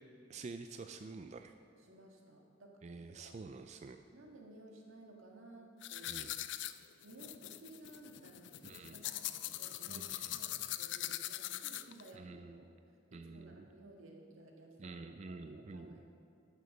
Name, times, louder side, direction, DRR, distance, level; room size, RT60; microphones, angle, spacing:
voice 1, 0.3-1.6 2.8-4.0 6.1-6.3 8.6-9.0 9.9-10.4 12.1-12.6 13.1-13.7 14.8-16.0, right 3 dB, 35° right, 7 dB, 0.3 m, -48 dB
voice 2, 1.8-2.8 3.2-3.3 4.1-6.2 7.0-16.0, right 2 dB, 90° right, 0 dB, 1.8 m, -56 dB
sound 1, 5.8-12.1, left 14 dB, 60° left, 0.3 m, -42 dB
10.5 x 6.7 x 6.4 m, 2.5 s
head